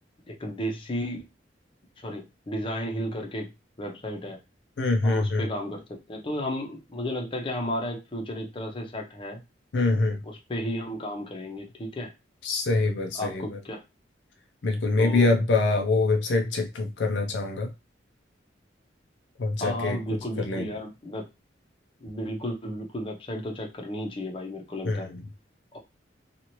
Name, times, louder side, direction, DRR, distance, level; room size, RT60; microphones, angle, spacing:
voice 1, 0.3-1.3 2.0-3.5 3.8-4.4 5.0-9.4 10.2-12.1 13.1-13.8 15.0-15.3 19.6-21.3 22.0-25.1 25.7-25.8, equal, 30° left, 0.7 m, -33 dB
voice 2, 4.8-5.4 9.7-10.2 12.4-13.6 14.6-17.7 19.4-20.0 20.4-20.7 24.9-25.1, left 3 dB, 70° left, 0.5 m, -24 dB
2.9 x 2.4 x 2.9 m
head